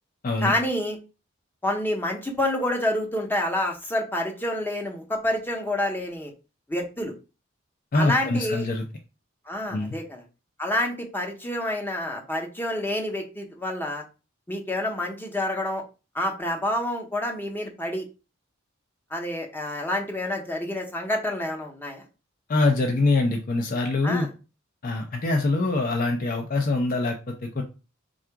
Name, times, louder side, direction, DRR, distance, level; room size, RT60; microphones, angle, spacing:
voice 1, 0.4-1.0 1.6-6.3 6.7-7.1 7.9-8.6 9.5-10.2 10.6-14.0 14.5-15.8 16.1-18.1 19.1-22.0 24.0-24.3, left 1 dB, 10° left, 1 dB, 0.7 m, -28 dB
voice 2, 7.9-8.9 9.7-9.9 22.5-24.3 24.8-27.6, left 2 dB, 45° left, 3 dB, 0.5 m, -24 dB
3.7 x 2.4 x 4.5 m, 0.32 s
head